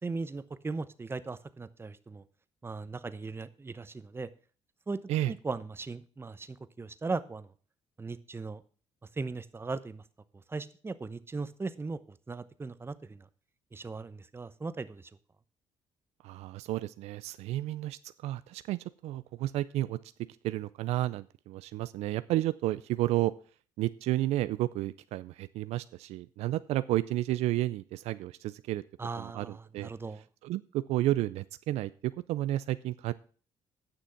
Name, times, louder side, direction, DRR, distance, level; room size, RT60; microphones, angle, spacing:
voice 1, 0.0-2.2 2.6-4.3 4.9-5.0 5.3-7.5 8.0-8.6 9.2-10.0 10.5-13.3 13.7-15.1 29.0-30.2, right 3 dB, 20° right, 14 dB, 0.9 m, -38 dB
voice 2, 16.2-20.0 20.4-23.3 23.8-28.8 29.2-29.5 29.7-29.9 30.4-33.1, right 15 dB, 75° right, 15 dB, 0.4 m, -31 dB
9.9 x 6.2 x 5.8 m, 0.40 s
supercardioid pair, 80°, 11 cm